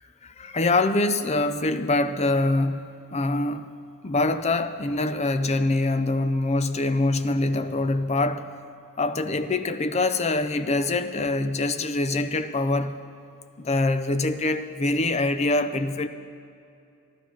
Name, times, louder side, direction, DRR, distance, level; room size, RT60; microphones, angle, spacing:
voice 1, 0.0-3.7 4.0-8.5 9.0-13.0 13.6-16.1, left 2 dB, 30° left, 11 dB, 0.5 m, -24 dB
13.0 x 12.5 x 5.8 m, 2.6 s
head